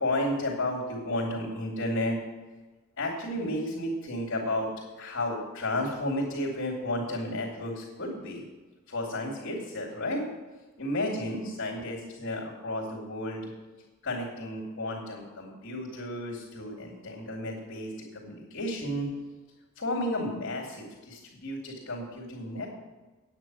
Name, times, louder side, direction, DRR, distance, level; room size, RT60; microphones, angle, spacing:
voice 1, 0.0-2.2 3.0-4.7 5.0-8.4 8.9-10.2 10.8-13.5 14.0-19.1 19.8-22.7, left 1 dB, 60° left, -7 dB, 2.5 m, -32 dB
9.3 x 8.9 x 6.2 m, 1.2 s
head